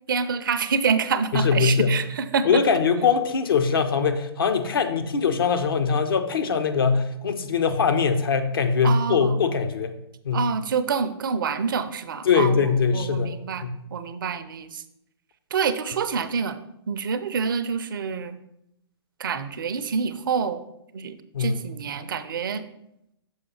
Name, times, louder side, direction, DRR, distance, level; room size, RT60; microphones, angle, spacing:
voice 1, 0.1-2.6 8.8-9.4 10.3-14.8 15.5-16.6 16.9-18.4 19.2-20.6 20.9-22.6, right 6 dB, 50° right, 11 dB, 0.5 m, -27 dB
voice 2, 1.3-2.0 2.4-10.0 10.2-10.5 12.2-13.3 13.6-13.7 21.3-21.6, left 5 dB, 55° left, 7 dB, 0.7 m, -22 dB
6.5 x 5.1 x 4.2 m, 0.79 s
figure-of-eight pair, 120°, 14 cm